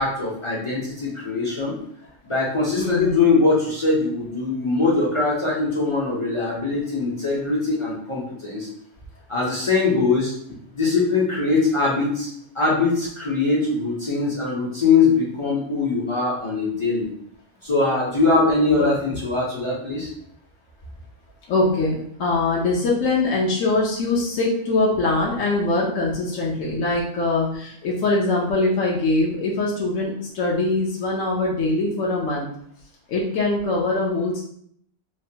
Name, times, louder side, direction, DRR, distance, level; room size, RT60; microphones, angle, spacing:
voice 1, 0.0-1.7 2.2-8.7 9.3-10.3 10.7-12.3 12.5-17.1 17.6-20.1, left 3 dB, 45° left, -6 dB, 0.4 m, -22 dB
voice 2, 2.7-3.2 18.8-18.9 19.2-19.3 21.5-32.5 33.1-34.4, left 2 dB, 75° left, -4 dB, 1.0 m, -22 dB
3.0 x 2.1 x 2.7 m, 0.67 s
omnidirectional pair, 1.4 m